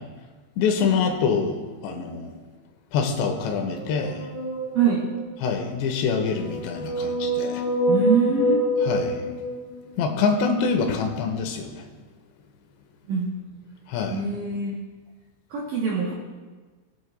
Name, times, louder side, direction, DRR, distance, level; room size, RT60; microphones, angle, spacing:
voice 1, 0.6-1.6 1.8-2.3 2.9-4.2 5.4-7.6 8.9-9.2 10.0-11.7 13.9-14.2, left 5 dB, 80° left, 4 dB, 3.1 m, -25 dB
sound 1, 3.7-5.3 6.2-10.1, equal, 25° left, 1.7 m, -26 dB
voice 2, 4.7-5.1 7.9-8.6 13.1-13.4 14.1-14.8 15.5-16.1, right 5 dB, 75° right, -4 dB, 2.0 m, -24 dB
20.5 x 8.0 x 2.2 m, 1.4 s
omnidirectional pair, 5.1 m